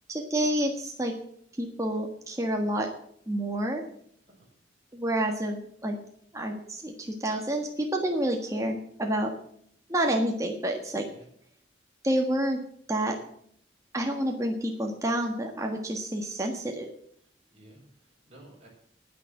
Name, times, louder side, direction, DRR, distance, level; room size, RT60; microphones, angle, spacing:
voice 1, 0.1-1.1 1.6-2.9 3.3-3.8 4.9-6.0 6.3-9.3 9.9-11.1 12.0-12.6 12.9-13.2 13.9-16.9, right 1 dB, 15° right, 2 dB, 1.5 m, -28 dB
voice 2, 17.5-18.7, right 1 dB, 35° right, -3 dB, 5.4 m, -54 dB
9.9 x 9.7 x 7.7 m, 0.65 s
head